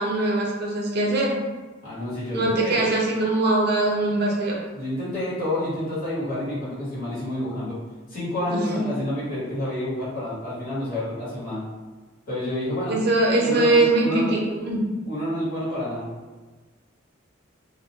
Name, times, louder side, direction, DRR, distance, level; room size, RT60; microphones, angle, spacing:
voice 1, 0.0-1.3 2.3-4.6 8.5-8.8 12.9-15.0, right 2 dB, 55° right, -2 dB, 0.5 m, -22 dB
voice 2, 1.8-2.9 4.7-7.8 8.1-11.6 12.3-13.0 13.4-14.3 15.0-16.1, left 1 dB, 45° left, -9 dB, 1.1 m, -29 dB
2.3 x 2.1 x 2.8 m, 1.3 s
head